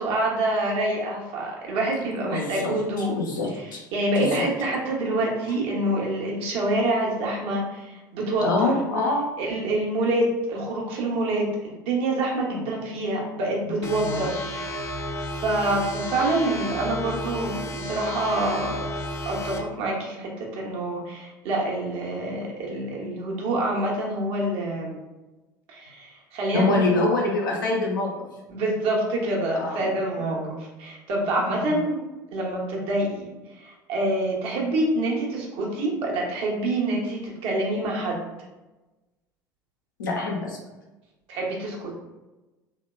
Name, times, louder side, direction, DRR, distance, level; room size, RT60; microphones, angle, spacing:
voice 1, 0.0-3.1 3.9-8.7 9.4-14.4 15.0-18.8 19.3-25.0 25.7-26.9 28.5-30.4 30.8-32.0 32.3-33.3 33.6-38.2 41.3-41.9, right 1 dB, 60° right, -2 dB, 1.0 m, -26 dB
voice 2, 2.3-3.8 4.2-4.5 8.4-9.3 12.5-12.7 13.7-14.3 26.5-28.1 29.5-29.9 30.2-30.6 31.5-31.8 40.0-40.6, left 2 dB, 80° left, -2 dB, 0.7 m, -26 dB
sound 1, 13.8-19.6, equal, 30° left, 0.5 m, -32 dB
3.2 x 3.0 x 2.2 m, 1.1 s
figure-of-eight pair, 65°, 10 cm